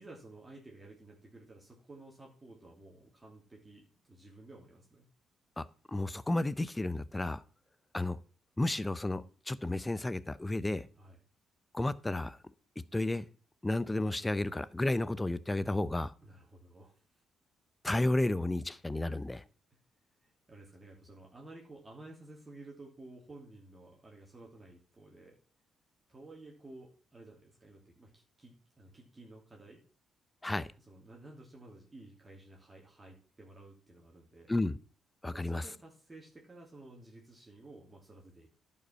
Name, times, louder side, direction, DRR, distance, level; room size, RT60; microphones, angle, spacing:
voice 1, 0.0-5.1 11.0-11.2 16.2-17.0 20.2-25.3 26.1-29.8 30.9-34.5 35.3-38.6, right 2 dB, 20° right, 2.8 m, -53 dB
voice 2, 5.6-7.4 7.9-8.2 8.6-10.9 11.7-12.4 12.9-13.3 13.6-16.1 17.8-19.4 30.4-30.7 34.5-34.8 35.2-35.6, left 2 dB, 15° left, 0.6 m, -32 dB
11.0 x 5.5 x 5.7 m
cardioid pair, 90°, 0 cm